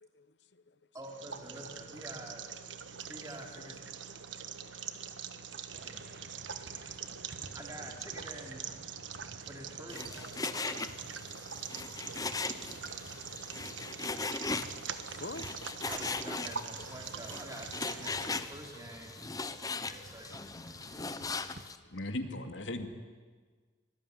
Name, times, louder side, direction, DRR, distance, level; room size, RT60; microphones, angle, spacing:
voice 1, 0.0-0.7 4.6-4.7 5.3-5.4 6.7-6.8 13.2-13.3 13.9-14.0 14.6-15.5, left 3 dB, 65° left, 1.1 m, -49 dB
voice 2, 0.9-2.5 3.1-3.8 5.8-7.0 7.5-8.6 9.4-10.0 15.9-19.2 19.8-20.4 21.3-21.6, right 1 dB, 20° right, 3.1 m, -48 dB
sound 1, 1.0-18.4, right 7 dB, 85° right, 1.4 m, -44 dB
sound 2, 5.7-21.6, right 2 dB, 55° right, 1.6 m, -53 dB
Frying (food), 9.9-21.8, left 4 dB, 20° left, 0.8 m, -39 dB
voice 3, 21.9-22.9, left 1 dB, 80° left, 2.4 m, -37 dB
24.5 x 19.5 x 9.7 m
head